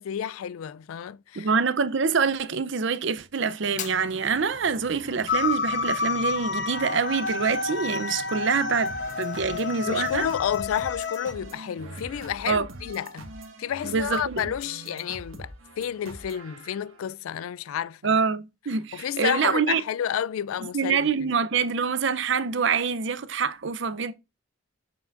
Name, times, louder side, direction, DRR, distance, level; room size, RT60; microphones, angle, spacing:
voice 1, 0.0-1.5 9.9-13.3 13.6-18.2 18.9-21.1, left 9 dB, 85° left, 0.3 m, -30 dB
voice 2, 1.4-10.3 12.5-12.7 13.8-14.5 18.0-19.8 20.6-24.1, right 5 dB, 60° right, 0.6 m, -26 dB
Fire, 3.6-10.6, left 6 dB, 35° left, 0.6 m, -45 dB
sound 1, 5.3-11.3, left 4 dB, 55° left, 0.9 m, -29 dB
sound 2, 8.9-17.1, right 2 dB, 75° right, 1.5 m, -43 dB
6.9 x 5.7 x 2.5 m
head